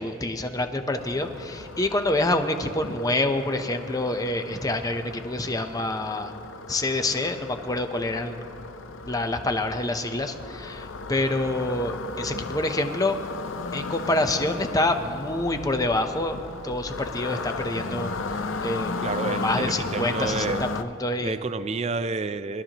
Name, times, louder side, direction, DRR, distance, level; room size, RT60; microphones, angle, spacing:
voice 1, 0.0-6.3 6.7-8.4 9.0-13.2 13.7-16.4 16.6-18.1 18.6-18.9 19.3-21.4, left 2 dB, 20° left, 6 dB, 0.8 m, -27 dB
sound 1, 1.0-20.8, left 4 dB, 85° left, 0.7 m, -35 dB
voice 2, 19.0-20.6 21.2-22.6, right 3 dB, 35° right, 12 dB, 0.4 m, -29 dB
23.5 x 12.5 x 3.0 m, 2.6 s
head